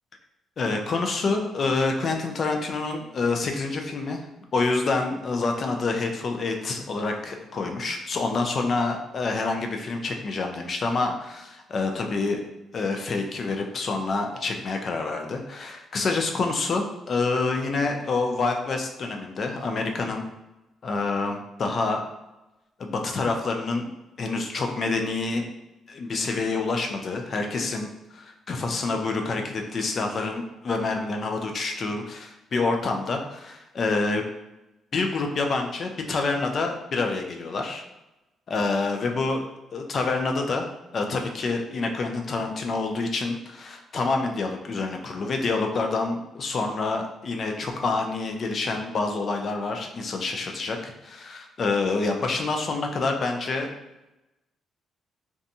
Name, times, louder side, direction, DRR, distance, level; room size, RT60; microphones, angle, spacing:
voice 1, 0.6-4.2 4.5-12.4 12.7-20.2 20.8-22.0 22.8-23.9 24.2-25.4 25.9-34.3 34.9-37.8 38.5-40.7 40.9-53.7, left 3 dB, 50° left, 3 dB, 0.4 m, -27 dB
2.6 x 2.3 x 2.6 m, 0.98 s
cardioid pair, 90°, 0 cm